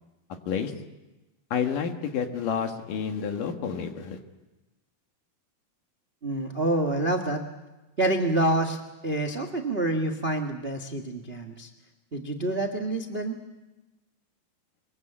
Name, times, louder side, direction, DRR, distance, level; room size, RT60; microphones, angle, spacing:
voice 1, 1.5-4.2, left 7 dB, 60° left, 5 dB, 3.1 m, -29 dB
voice 2, 6.2-7.4 8.0-11.7 12.1-13.4, right 2 dB, 55° right, 4 dB, 0.6 m, -27 dB
25.0 x 22.5 x 8.8 m, 1.1 s
omnidirectional pair, 4.5 m